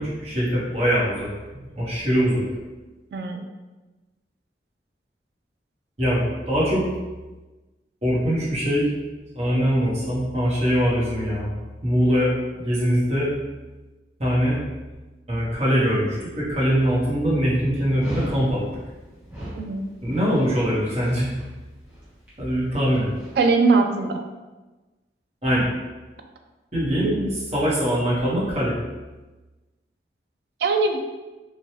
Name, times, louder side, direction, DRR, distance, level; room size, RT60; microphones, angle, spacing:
voice 1, 0.0-2.4 6.0-6.8 8.0-8.9 9.3-11.5 11.8-13.3 14.2-14.6 15.3-18.6 20.0-21.3 22.4-23.1 25.4-25.6 26.7-27.1 27.5-28.7, equal, 35° right, -7 dB, 1.0 m, -22 dB
voice 2, 3.1-3.4 19.6-19.8 23.4-24.2 27.0-27.3 30.6-31.0, right 3 dB, 65° right, 4 dB, 0.3 m, -21 dB
Dog, 18.0-23.4, equal, 10° right, 0.9 m, -39 dB
3.1 x 2.2 x 2.8 m, 1.2 s
head